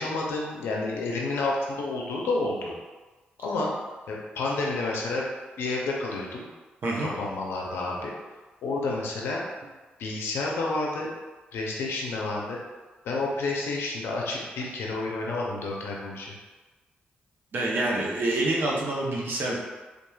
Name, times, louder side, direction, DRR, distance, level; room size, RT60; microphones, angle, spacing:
voice 1, 0.0-2.7 3.4-3.7 4.1-5.2 5.6-6.5 7.0-8.1 8.6-9.4 10.0-11.1 11.5-12.6 13.0-16.3, left 3 dB, 80° left, -2 dB, 0.5 m, -30 dB
voice 2, 6.8-7.1 17.5-19.6, right 2 dB, 60° right, -3 dB, 0.7 m, -27 dB
3.0 x 2.3 x 2.3 m, 1.2 s
supercardioid pair, 50°, 4 cm